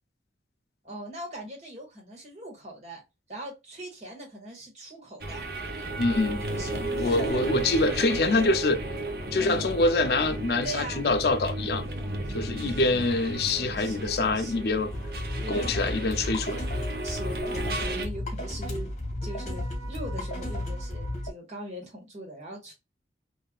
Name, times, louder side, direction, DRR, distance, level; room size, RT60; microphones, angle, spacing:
voice 1, 0.8-3.0 3.3-5.4 6.3-7.5 8.3-8.4 9.4-9.7 10.6-11.0 11.9-12.2 12.6-13.0 13.8-14.7 15.4-15.7 17.0-18.9 19.2-22.7, right 1 dB, 40° right, 1.7 m, -40 dB
sound 1, 5.2-18.0, right 1 dB, 60° right, 0.7 m, -34 dB
voice 2, 6.0-6.4 6.7-8.8 9.3-11.9 12.3-14.9 15.5-16.6, left 2 dB, 65° left, 0.5 m, -25 dB
sound 2, 14.9-21.3, left 1 dB, 40° left, 1.2 m, -33 dB
3.5 x 2.6 x 2.3 m
head